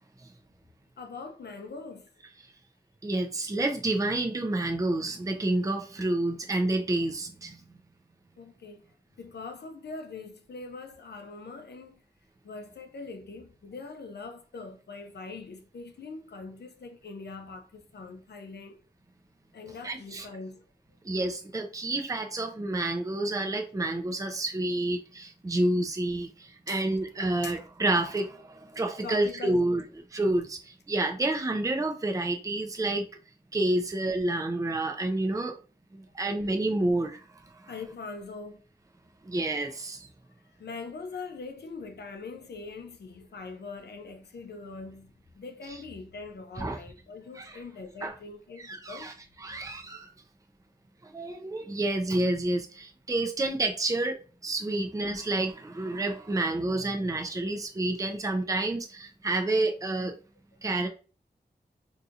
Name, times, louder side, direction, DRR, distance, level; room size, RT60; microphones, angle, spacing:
voice 1, 1.0-2.1 8.4-8.8 9.2-12.0 12.4-18.8 19.5-20.6 21.5-21.6 22.0-22.1 26.7-26.8 27.4-27.5 29.0-29.8 37.7-38.6 39.6-39.8 40.6-49.1 54.7-54.8, left 4 dB, 80° left, 0.6 m, -42 dB
voice 2, 3.0-7.8 19.8-20.3 21.0-29.8 30.1-33.1 33.5-35.6 35.9-37.2 39.2-40.1 45.7-45.8 46.6-46.8 47.4-47.6 48.0-48.1 48.6-50.1 51.1-60.1 60.6-60.9, right 2 dB, 20° right, 0.5 m, -29 dB
3.7 x 2.8 x 2.5 m
cardioid pair, 50°, 17 cm